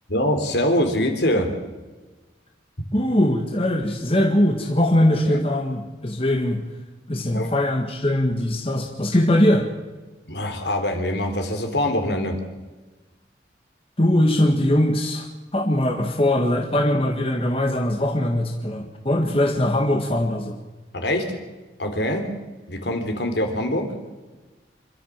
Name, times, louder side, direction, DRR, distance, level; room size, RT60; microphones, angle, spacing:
voice 1, 0.1-1.5 5.2-5.4 7.3-7.5 10.3-12.4 20.9-21.4 21.8-22.3 22.7-23.9, left 1 dB, 65° left, 5 dB, 3.5 m, -24 dB
voice 2, 2.9-6.6 7.1-9.7 14.0-15.3 15.5-20.5, left 1 dB, 30° left, 2 dB, 1.7 m, -21 dB
26.5 x 13.0 x 7.4 m, 1.2 s
head